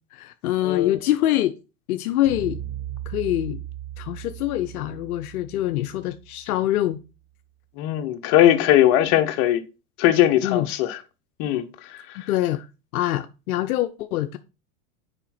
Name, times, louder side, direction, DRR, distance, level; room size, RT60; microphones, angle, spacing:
voice 1, 0.1-1.6 1.9-2.6 3.1-3.6 4.0-7.0 10.4-10.7 12.3-12.6 12.9-14.4, left 14 dB, 80° left, 0.7 m, -24 dB
sound 1, 2.2-6.6, right 11 dB, 80° right, 1.9 m, -37 dB
voice 2, 7.8-9.6 10.0-11.0 11.4-12.2, left 12 dB, 50° left, 1.2 m, -20 dB
6.8 x 5.0 x 4.2 m
hypercardioid pair, 120°, 44 cm